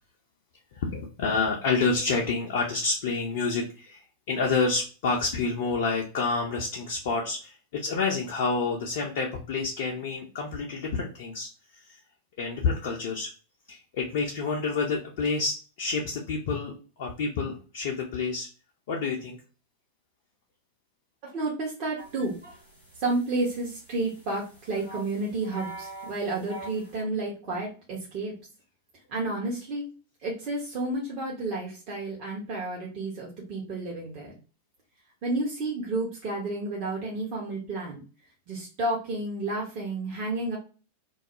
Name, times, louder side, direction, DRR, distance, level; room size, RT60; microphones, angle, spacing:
voice 1, 0.7-4.0 4.3-12.0 12.4-13.3 13.7-18.5 18.9-19.4, left 4 dB, 55° left, -1 dB, 0.4 m, -28 dB
voice 2, 21.2-22.3 22.9-28.3 29.1-29.9 30.2-34.4 35.2-38.0 38.5-40.6, right 2 dB, 40° right, -3 dB, 0.7 m, -31 dB
sound 1, 22.0-27.0, right 2 dB, 85° right, 1.1 m, -45 dB
2.3 x 2.0 x 2.8 m, 0.36 s
figure-of-eight pair, 90°, 0 cm